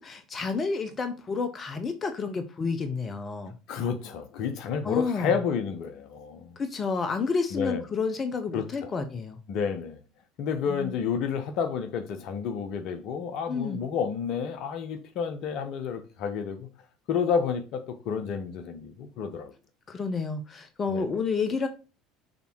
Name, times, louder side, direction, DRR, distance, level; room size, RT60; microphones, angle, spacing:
voice 1, 0.0-3.6 4.8-5.3 6.6-9.4 10.7-10.9 13.5-13.8 19.9-21.7, left 4 dB, 35° left, 0.8 m, -30 dB
voice 2, 3.7-6.5 7.5-7.8 8.5-8.9 9.5-10.0 10.4-16.7 17.1-19.5 20.9-21.2, left 6 dB, 55° left, 1.0 m, -30 dB
6.5 x 3.5 x 4.6 m
hypercardioid pair, 70°, 0 cm